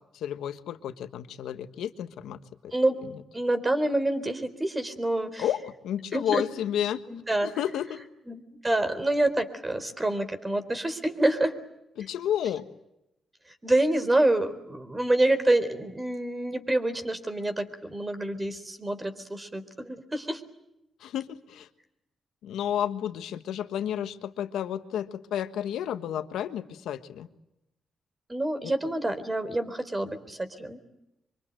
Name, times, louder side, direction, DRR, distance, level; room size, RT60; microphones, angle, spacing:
voice 1, 0.1-2.7 5.4-7.0 7.4-8.0 12.0-12.6 21.0-21.7 22.4-27.3 28.6-28.7, left 10 dB, 90° left, 9 dB, 1.4 m, -31 dB
voice 2, 3.3-5.5 6.1-6.4 7.1-7.5 8.3-11.5 13.6-20.4 28.3-30.8, right 1 dB, 20° right, 10 dB, 3.9 m, -27 dB
24.5 x 24.5 x 9.3 m, 0.88 s
cardioid pair, 70°, 0 cm